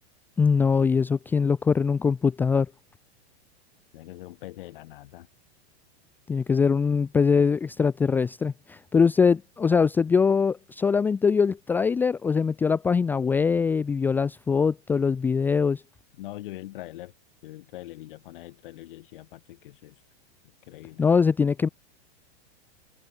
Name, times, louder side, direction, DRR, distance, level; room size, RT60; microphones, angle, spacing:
voice 1, 0.4-2.7 6.3-15.8 21.0-21.7, left 5 dB, 5° left, 0.7 m, -22 dB
voice 2, 3.9-5.3 16.2-17.1 17.4-20.0 20.6-21.1, left 16 dB, 50° left, 6.3 m, -42 dB
supercardioid pair, 180°, 34 cm